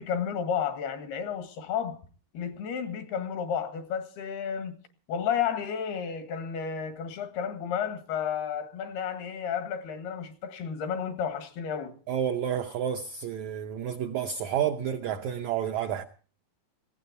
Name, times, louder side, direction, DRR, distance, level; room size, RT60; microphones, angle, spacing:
voice 1, 0.0-2.0 2.3-4.8 5.1-12.0, left 7 dB, 85° left, 3.8 m, -32 dB
voice 2, 12.1-16.0, right 9 dB, 90° right, 1.6 m, -30 dB
19.5 x 16.0 x 4.1 m
omnidirectional pair, 4.4 m